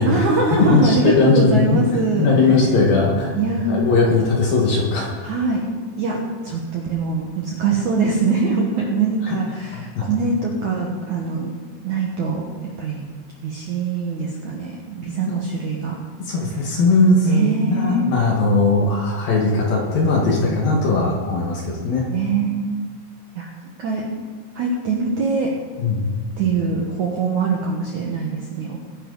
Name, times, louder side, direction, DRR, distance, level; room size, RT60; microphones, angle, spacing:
voice 1, 0.1-2.3 3.3-4.1 5.2-5.7 6.0-11.5 11.8-12.4 12.8-13.0 13.4-16.0 17.3-18.1 22.1-22.8 23.3-23.5 23.8-24.1 24.5-25.6 26.4-28.8, right 4 dB, 85° right, -1 dB, 1.7 m, -23 dB
voice 2, 0.6-1.8 2.2-3.3 3.7-5.3 9.2-9.4 9.7-10.1 16.2-22.1 25.8-26.1, left 3 dB, 60° left, -2 dB, 2.8 m, -19 dB
21.5 x 10.5 x 4.0 m, 1.5 s
omnidirectional pair, 5.6 m